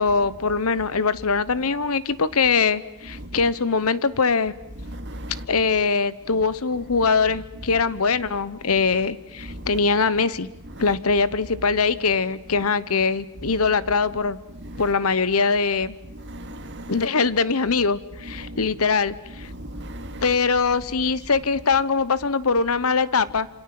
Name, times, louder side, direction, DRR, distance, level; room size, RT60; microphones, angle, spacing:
voice 1, 0.0-4.5 5.5-10.5 10.8-14.4 14.8-15.9 16.9-19.5 20.2-23.5, left 4 dB, 80° left, 1.1 m, -22 dB
voice 2, 4.9-5.4 9.5-9.7 14.7-14.8 16.3-16.9 18.4-18.6 19.5-20.2, equal, 55° right, 2.4 m, -36 dB
27.5 x 26.5 x 7.8 m
head